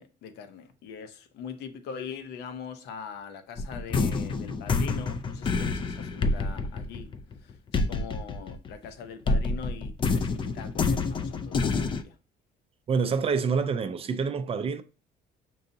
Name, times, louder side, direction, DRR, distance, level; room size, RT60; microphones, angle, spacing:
voice 1, 0.0-7.1 7.4-12.2, left 6 dB, 80° left, 0.7 m, -42 dB
sound 1, 3.6-8.9 9.3-12.0, left 4 dB, 30° left, 0.4 m, -28 dB
voice 2, 12.9-14.8, right 5 dB, 35° right, 0.4 m, -27 dB
5.4 x 2.6 x 2.6 m
cardioid pair, 110°, 17 cm